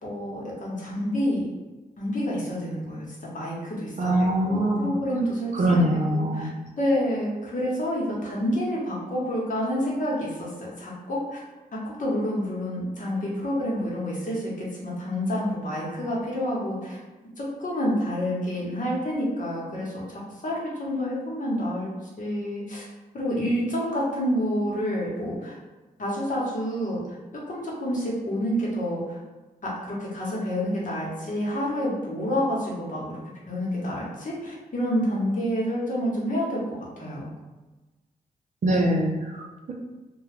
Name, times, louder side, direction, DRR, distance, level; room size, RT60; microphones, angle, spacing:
voice 1, 0.0-1.5 2.0-3.0 3.3-5.8 6.1-6.5 6.8-11.4 11.7-17.0 17.4-21.9 22.2-22.8 23.1-25.5 26.0-27.0 27.5-29.2 29.6-33.2 33.5-37.3, equal, 50° left, -5 dB, 1.0 m, -28 dB
voice 2, 4.0-4.9 5.5-6.5 38.6-39.7, right 1 dB, 45° right, 0 dB, 0.5 m, -23 dB
2.2 x 2.2 x 3.3 m, 1.2 s
supercardioid pair, 50°, 17 cm